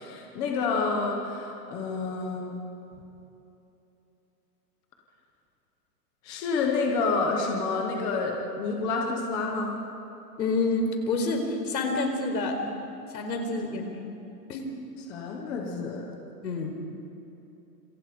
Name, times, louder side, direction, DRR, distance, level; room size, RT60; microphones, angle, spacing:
voice 1, 0.0-2.6 6.2-9.8 13.7-13.8 15.0-16.1, left 4 dB, 10° left, 0 dB, 0.7 m, -29 dB
voice 2, 10.4-12.6 13.1-13.9 14.5-14.7 16.4-16.7, left 3 dB, 80° left, 4 dB, 4.7 m, -28 dB
27.0 x 26.5 x 5.2 m, 2.9 s
hypercardioid pair, 175°, 50 cm